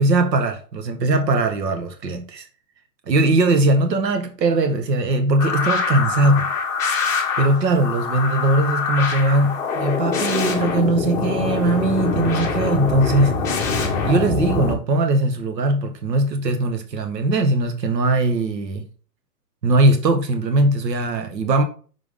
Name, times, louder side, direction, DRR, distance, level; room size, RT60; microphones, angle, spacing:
voice 1, 0.0-2.5 3.1-6.5 7.4-13.4 14.0-18.8 19.6-21.6, right 2 dB, 80° right, 1.3 m, -20 dB
sound 1, 5.4-14.7, left 4 dB, 5° left, 0.7 m, -24 dB
5.9 x 5.1 x 3.6 m
hypercardioid pair, 150°, 50 cm